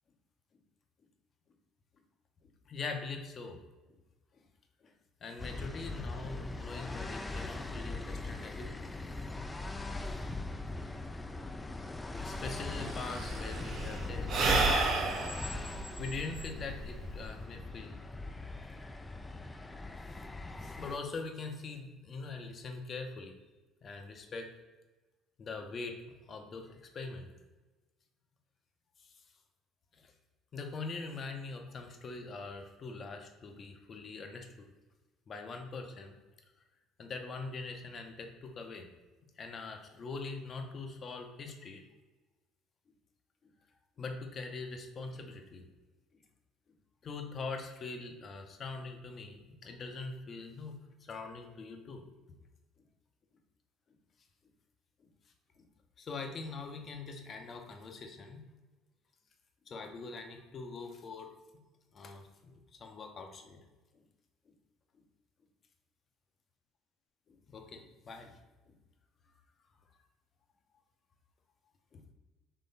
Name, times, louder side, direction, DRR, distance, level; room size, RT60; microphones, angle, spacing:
voice 1, 2.7-3.6 5.2-8.9 12.1-14.4 16.0-18.0 19.7-19.8 20.2-20.3 20.6-23.3 23.8-24.5 25.4-26.0 26.3-27.3 29.0-29.1 30.5-34.7 35.3-36.1 37.0-38.9 39.4-41.8 44.0-45.6 47.0-52.0 56.0-58.4 59.7-61.3 61.9-63.6 67.5-68.3 71.9-72.0, left 4 dB, 45° left, 4 dB, 0.7 m, -43 dB
sound 1, 5.4-21.0, left 2 dB, 15° left, 0.4 m, -41 dB
Sigh / Breathing, 12.2-12.3 12.5-17.2, right 3 dB, 55° right, 0.9 m, -31 dB
3.8 x 3.0 x 4.0 m, 1.2 s
supercardioid pair, 80°, 0 cm